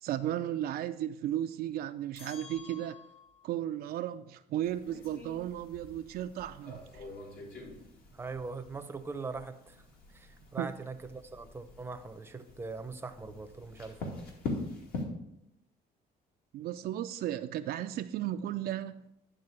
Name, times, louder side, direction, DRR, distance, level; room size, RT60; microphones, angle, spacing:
voice 1, 0.0-3.0 3.4-7.1 10.6-10.7 16.5-19.0, right 12 dB, 65° right, 0.4 m, -35 dB
sound 1, 2.1-3.5, left 6 dB, 35° left, 1.3 m, -51 dB
sound 2, 4.6-15.0, left 2 dB, 65° left, 2.2 m, -44 dB
voice 2, 8.1-9.8 10.1-14.0, right 4 dB, 15° right, 0.7 m, -41 dB
9.9 x 3.8 x 6.6 m
cardioid pair, 110°, 17 cm